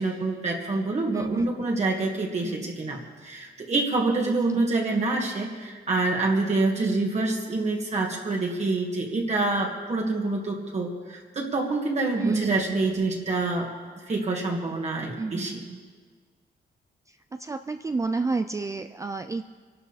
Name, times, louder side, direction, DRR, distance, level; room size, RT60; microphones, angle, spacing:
voice 1, 0.0-13.7 14.1-15.6, right 3 dB, 40° right, -1 dB, 1.9 m, -26 dB
voice 2, 1.1-1.5 2.4-2.7 4.2-4.7 6.8-7.0 12.1-12.6 15.2-15.8 17.3-19.4, right 3 dB, 20° right, 8 dB, 0.4 m, -30 dB
24.0 x 12.0 x 4.1 m, 1.5 s
wide cardioid pair, 135°, 18 cm